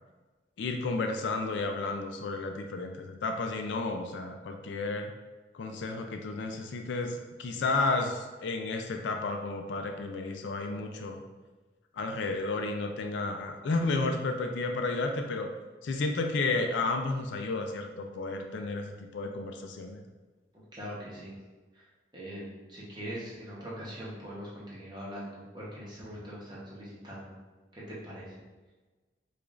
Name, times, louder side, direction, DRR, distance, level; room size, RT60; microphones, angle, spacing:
voice 1, 0.6-5.1 5.5-11.2 11.9-15.5 15.8-20.0, left 3 dB, 75° left, 4 dB, 0.4 m, -32 dB
voice 2, 20.7-21.4 21.7-21.8 22.1-27.3 27.7-28.3, equal, 25° right, -6 dB, 0.9 m, -42 dB
4.8 x 2.4 x 2.4 m, 1.2 s
head